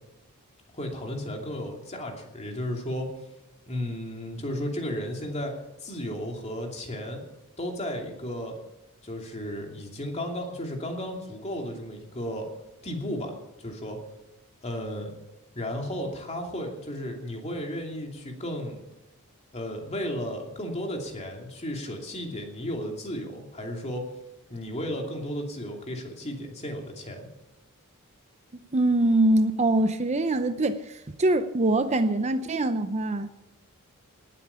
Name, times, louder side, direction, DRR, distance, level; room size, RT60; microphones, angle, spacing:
voice 1, 0.7-3.1 3.7-5.6 5.8-7.2 7.6-8.6 9.0-12.5 12.8-14.0 14.6-15.1 15.5-18.8 19.5-24.1 24.5-27.3, equal, 30° left, 1 dB, 2.7 m, -34 dB
voice 2, 28.7-33.3, right 2 dB, 30° right, 10 dB, 0.6 m, -23 dB
19.0 x 8.5 x 6.9 m, 0.96 s
head